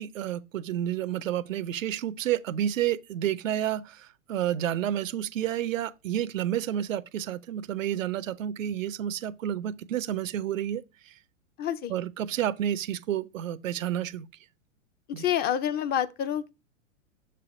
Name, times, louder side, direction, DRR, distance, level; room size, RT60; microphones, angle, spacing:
voice 1, 0.0-11.1 11.9-14.3 15.1-15.3, right 11 dB, 80° right, 0.6 m, -30 dB
voice 2, 11.6-11.9 15.1-16.5, left 10 dB, 25° left, 0.6 m, -28 dB
6.7 x 3.3 x 4.9 m
hypercardioid pair, 105°, 39 cm